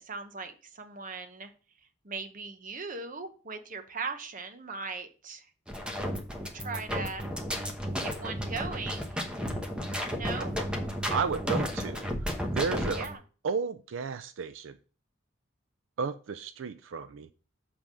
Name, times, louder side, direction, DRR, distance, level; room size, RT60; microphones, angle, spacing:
voice 1, 0.0-1.5 2.0-5.5 6.5-7.3 8.0-9.2 10.2-10.5 12.9-13.2, right 4 dB, 45° right, 8 dB, 0.8 m, -39 dB
sound 1, 5.7-13.1, equal, 5° right, 1.0 m, -33 dB
voice 2, 11.1-12.1 12.5-13.1 13.4-14.7 16.0-17.3, right 5 dB, 75° right, 11 dB, 0.4 m, -32 dB
7.4 x 3.5 x 6.1 m, 0.38 s
head